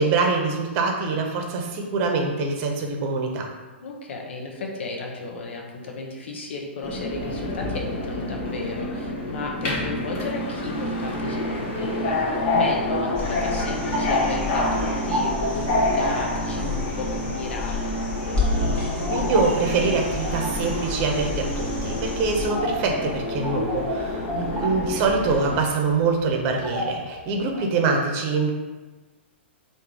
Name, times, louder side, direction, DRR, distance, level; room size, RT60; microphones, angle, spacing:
voice 1, 0.0-3.5 19.1-24.3 24.6-28.5, right 4 dB, 40° right, 2 dB, 0.8 m, -24 dB
voice 2, 3.8-18.0 24.3-24.6, left 2 dB, 70° left, 0 dB, 0.9 m, -34 dB
Subway metro underground, 6.8-25.6, left 2 dB, 40° left, 1.0 m, -28 dB
sound 1, 13.1-22.5 24.6-24.7, left 2 dB, 20° left, 1.2 m, -31 dB
sound 2, 13.3-27.6, equal, 10° right, 1.1 m, -34 dB
3.7 x 2.7 x 4.6 m, 1.2 s
hypercardioid pair, 125°, 7 cm